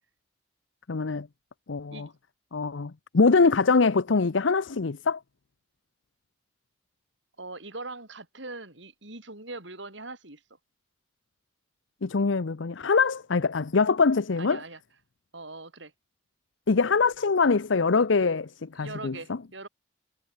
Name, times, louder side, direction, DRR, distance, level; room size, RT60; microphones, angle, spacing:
voice 1, 0.9-1.3 1.7-2.1 2.5-5.2 12.0-14.6 16.7-19.2, left 4 dB, 80° left, 0.7 m, -23 dB
voice 2, 7.4-10.4 14.4-14.8 15.3-15.9 18.8-19.7, right 2 dB, 70° right, 7.0 m, -41 dB
head